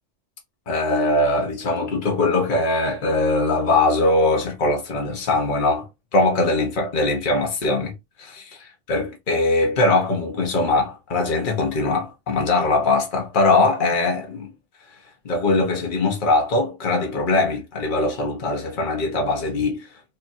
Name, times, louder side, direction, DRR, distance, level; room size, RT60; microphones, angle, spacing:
voice 1, 0.7-8.6 8.9-14.5 15.2-19.9, left 2 dB, 45° left, 1.2 m, -21 dB
5.1 x 2.5 x 2.6 m
omnidirectional pair, 1.2 m